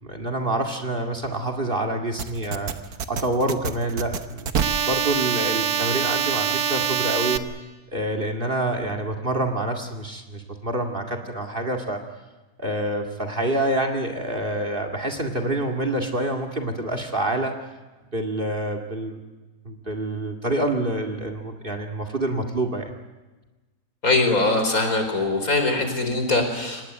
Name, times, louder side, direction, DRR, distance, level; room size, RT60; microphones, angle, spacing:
voice 1, 0.0-2.7 3.1-4.5 4.8-7.4 7.9-12.0 12.6-17.5 18.1-19.2 19.7-22.9, right 1 dB, 35° right, 7 dB, 2.3 m, -27 dB
sound 1, 2.2-7.4, right 8 dB, 70° right, 1.6 m, -25 dB
voice 2, 24.0-26.8, left 2 dB, 60° left, 5 dB, 4.9 m, -22 dB
24.5 x 19.5 x 9.2 m, 1.2 s
omnidirectional pair, 1.7 m